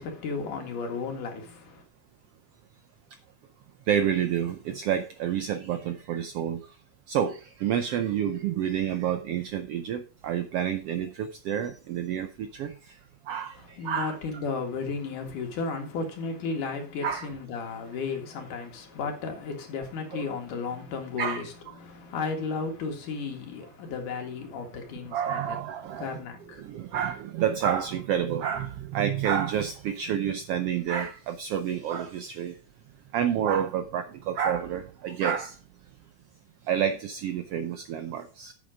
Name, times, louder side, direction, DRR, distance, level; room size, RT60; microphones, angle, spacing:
voice 1, 0.0-1.8 13.6-25.6 26.0-26.7, left 4 dB, 90° left, 3.5 m, -34 dB
voice 2, 3.9-6.6 7.1-12.7 13.3-14.1 17.0-17.3 20.1-20.2 21.2-21.4 25.1-26.1 26.6-32.5 33.1-35.6 36.7-38.5, right 9 dB, 80° right, 1.3 m, -29 dB
8.7 x 7.0 x 4.9 m
omnidirectional pair, 3.5 m